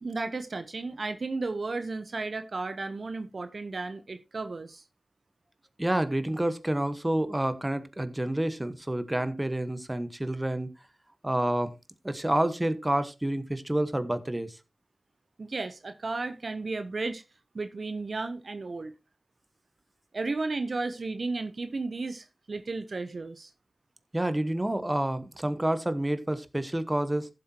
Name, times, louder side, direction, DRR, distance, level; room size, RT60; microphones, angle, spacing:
voice 1, 0.0-4.8 15.4-17.2 17.5-18.9 20.1-23.5, right 3 dB, 55° right, 0.9 m, -34 dB
voice 2, 5.8-10.7 11.2-11.7 12.0-14.6 24.1-27.3, right 1 dB, 15° right, 1.3 m, -28 dB
15.0 x 7.9 x 2.9 m
wide cardioid pair, 65°, 0 cm